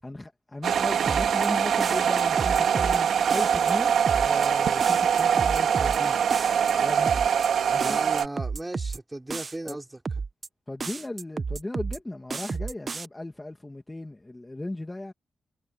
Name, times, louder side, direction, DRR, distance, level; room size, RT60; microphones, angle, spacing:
voice 1, 0.0-6.2 6.8-7.3 7.7-8.0 9.6-9.8 10.7-15.1, left 2 dB, 15° left, 2.0 m, -36 dB
sound 1, 0.6-8.3, right 7 dB, 80° right, 2.1 m, -23 dB
sound 2, 1.1-1.5 1.8-3.0 3.3-3.7 4.1-4.5 4.8-6.0 6.3-6.7 7.1-7.5 7.8-9.0 9.3-9.7 10.1-10.5 10.8-12.0 12.3-13.1, right 4 dB, 35° right, 0.8 m, -32 dB
voice 2, 7.8-10.0, right 2 dB, 15° right, 4.6 m, -36 dB
wide cardioid pair, 140°, 0 cm